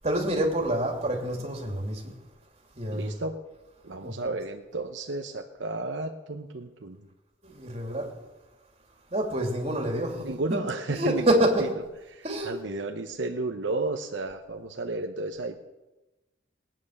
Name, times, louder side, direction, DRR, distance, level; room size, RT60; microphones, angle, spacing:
voice 1, 0.0-2.1 2.8-3.1 4.0-4.2 7.4-8.1 9.1-10.6 10.9-11.7 12.2-12.6, right 1 dB, 35° right, 2.9 m, -27 dB
voice 2, 2.9-3.3 3.8-7.0 10.2-11.7 12.1-15.6, right 2 dB, 75° right, 0.9 m, -32 dB
19.5 x 9.3 x 6.6 m
head